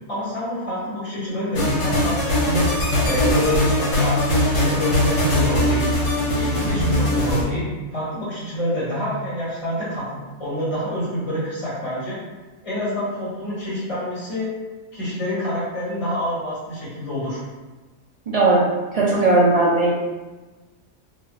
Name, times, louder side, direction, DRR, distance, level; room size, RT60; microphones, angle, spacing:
voice 1, 0.1-2.6 3.0-5.9 6.3-7.6 7.9-10.0 10.4-12.2 12.6-14.5 14.9-17.4, equal, 25° left, -9 dB, 1.5 m, -27 dB
sound 1, 1.5-7.4, left 1 dB, 60° left, 1.2 m, -20 dB
voice 2, 6.6-7.0 18.3-18.7 18.9-19.9, right 2 dB, 60° right, -6 dB, 0.4 m, -18 dB
2.8 x 2.6 x 3.1 m, 1.2 s
omnidirectional pair, 1.3 m